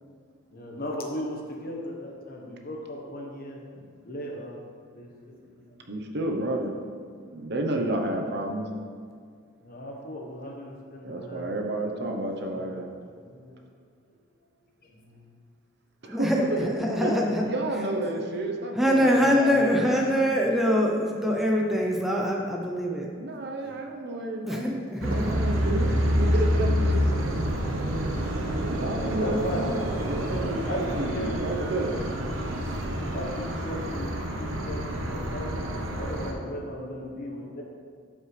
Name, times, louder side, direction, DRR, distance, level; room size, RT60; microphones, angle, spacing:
voice 1, 0.5-4.6 4.9-5.7 7.1-7.2 9.6-12.1 12.5-13.6 14.1-14.2 15.1-15.3 17.3-17.5 20.4-20.5 21.6-21.8 23.6-23.8 28.9-29.7 30.6-31.7 33.1-37.6, equal, 50° left, 0 dB, 1.2 m, -37 dB
voice 2, 5.9-6.8 7.3-8.7 11.0-12.9 16.2-17.1 17.5-20.1 23.1-27.5 27.9-28.2 28.7-32.0, right 1 dB, 55° right, 2 dB, 0.9 m, -31 dB
voice 3, 16.1-17.5 18.8-23.1 24.4-25.4, equal, ahead, -1 dB, 0.6 m, -24 dB
sound 1, 25.0-36.3, equal, 85° right, 1.0 m, -28 dB
12.5 x 5.4 x 3.3 m, 2.1 s
head